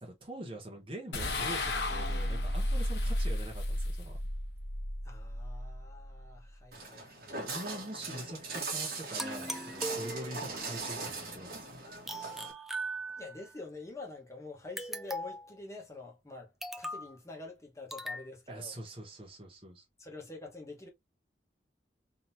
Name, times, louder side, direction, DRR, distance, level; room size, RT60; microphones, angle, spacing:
voice 1, 0.0-4.3 7.3-11.8 18.5-19.8, right 1 dB, 30° right, 1.1 m, -44 dB
sound 1, 1.1-6.5, left 1 dB, 75° left, 1.0 m, -33 dB
voice 2, 5.0-7.3 13.2-18.7 20.0-20.9, left 3 dB, 15° left, 1.2 m, -46 dB
Walk footsteps, 6.7-12.5, right 3 dB, 55° right, 1.4 m, -40 dB
sound 2, 9.2-10.6 12.1-13.5 14.8-15.5 16.6-17.1 17.9-18.3, right 1 dB, ahead, 0.3 m, -39 dB
3.7 x 2.9 x 2.7 m
head